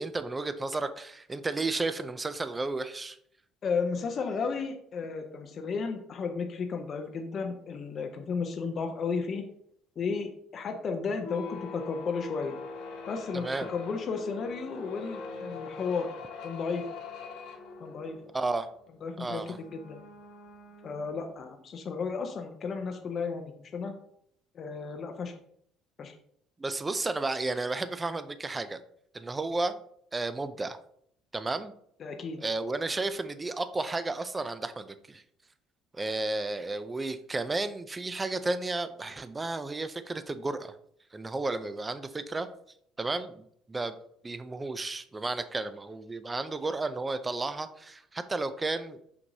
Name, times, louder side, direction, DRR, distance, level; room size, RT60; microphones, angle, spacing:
voice 1, 0.0-3.2 13.3-13.7 18.3-18.7 19.2-19.6 26.6-28.8 29.1-29.8 30.1-30.8 31.3-31.7 32.4-35.2 35.9-40.7 41.1-42.5 43.0-44.0 44.2-49.2, right 3 dB, 10° right, 11 dB, 0.3 m, -33 dB
voice 2, 3.6-9.4 10.0-12.6 13.1-16.1 16.4-16.9 17.8-18.2 19.0-20.0 20.8-23.9 24.5-25.3 26.0-26.1 32.0-32.4, left 5 dB, 30° left, 4 dB, 0.6 m, -33 dB
sound 1, 11.2-21.5, left 4 dB, 85° left, 1.4 m, -43 dB
6.0 x 5.9 x 2.7 m, 0.67 s
cardioid pair, 175°, 0 cm